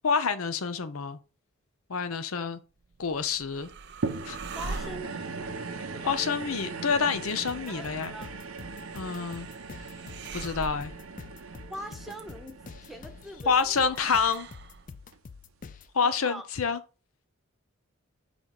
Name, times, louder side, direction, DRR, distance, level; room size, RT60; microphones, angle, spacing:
voice 1, 0.0-1.2 1.9-2.6 3.0-3.7 4.3-4.4 6.1-8.1 8.9-9.5 10.3-10.9 13.5-14.5 15.9-16.8, left 5 dB, 85° left, 0.7 m, -27 dB
sound 1, 2.8-14.9, right 4 dB, 50° right, 0.5 m, -45 dB
sound 2, 4.0-14.5 15.1-15.2, right 4 dB, 85° right, 0.8 m, -39 dB
voice 2, 4.5-5.5 5.9-6.2 7.7-8.3 11.7-14.0 16.0-16.4, equal, ahead, 0.8 m, -42 dB
sound 3, 7.2-15.9, left 5 dB, 40° left, 0.4 m, -47 dB
5.1 x 4.0 x 4.7 m
head